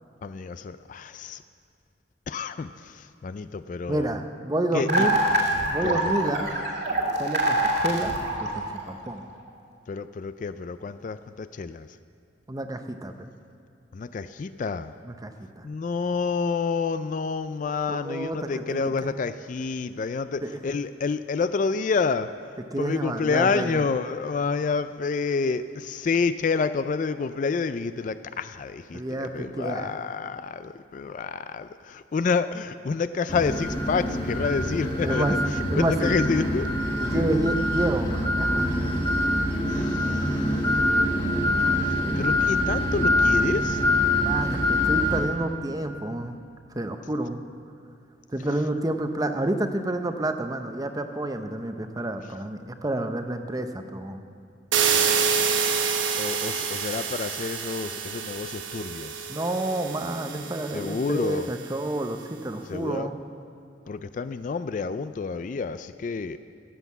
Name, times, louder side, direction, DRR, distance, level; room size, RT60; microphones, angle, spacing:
voice 1, 0.2-1.4 2.3-2.7 3.2-4.1 4.7-5.1 5.8-6.1 9.9-11.9 13.9-14.9 15.6-22.3 22.8-35.4 35.8-36.7 37.1-37.3 39.7-40.0 42.2-43.8 54.9-55.0 55.6-55.9 56.2-59.2 60.7-61.5 62.7-63.1 63.9-66.4, left 4 dB, 40° left, 12 dB, 0.3 m, -28 dB
voice 2, 3.9-5.2 5.7-6.5 7.2-8.1 8.4-9.2 12.5-13.3 15.0-15.7 17.9-18.9 20.4-20.6 22.7-23.8 28.9-30.0 35.0-35.4 35.7-36.1 37.0-38.7 44.1-46.4 46.8-47.4 48.3-54.3 59.3-63.2, right 1 dB, 20° right, 7 dB, 0.6 m, -29 dB
sound 1, 4.9-9.1, right 1 dB, 60° right, 2.2 m, -25 dB
sound 2, 33.3-45.2, left 1 dB, 25° left, 1.9 m, -24 dB
sound 3, 54.7-61.5, right 6 dB, 80° right, 1.1 m, -27 dB
16.0 x 8.0 x 7.2 m, 2.4 s
head